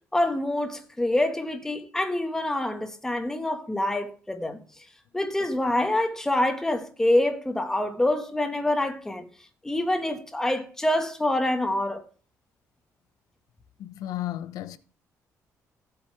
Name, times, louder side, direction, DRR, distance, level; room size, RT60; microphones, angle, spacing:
voice 1, 0.1-4.6 5.1-9.2 9.6-12.0, left 1 dB, 10° left, 1.5 m, -26 dB
voice 2, 13.8-14.8, left 13 dB, 90° left, 0.8 m, -33 dB
15.5 x 8.1 x 3.3 m
cardioid pair, 145°, 6 cm